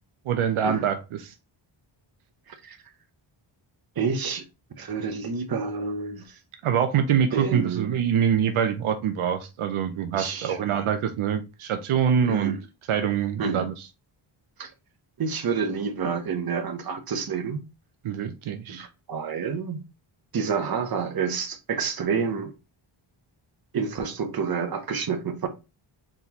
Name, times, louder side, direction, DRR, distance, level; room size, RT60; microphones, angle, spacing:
voice 1, 0.3-1.3 6.6-12.6 12.9-13.9 18.0-18.9, right 8 dB, 80° right, 0.7 m, -25 dB
voice 2, 4.0-4.4 4.8-6.4 7.3-7.9 10.1-10.6 12.2-12.6 13.4-13.7 14.6-14.7 15.2-17.6 18.7-19.8 20.3-22.5 23.7-25.5, right 5 dB, 45° right, 0.9 m, -29 dB
4.0 x 3.6 x 2.9 m
wide cardioid pair, 120°, 49 cm